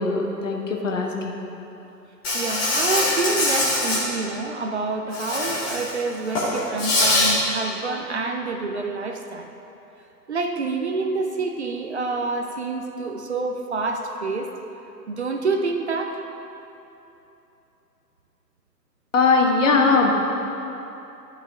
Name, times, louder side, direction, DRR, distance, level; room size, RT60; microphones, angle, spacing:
voice 1, 0.0-1.3 19.1-20.1, left 4 dB, 50° left, 1 dB, 1.3 m, -20 dB
Insect, 2.2-4.0 5.1-5.9 6.3-7.3, left 2 dB, 10° left, 0.9 m, -22 dB
voice 2, 2.3-9.5 10.3-14.5 15.1-16.2, right 3 dB, 45° right, 4 dB, 0.6 m, -27 dB
12.0 x 5.7 x 4.8 m, 3.0 s
figure-of-eight pair, 135°, 49 cm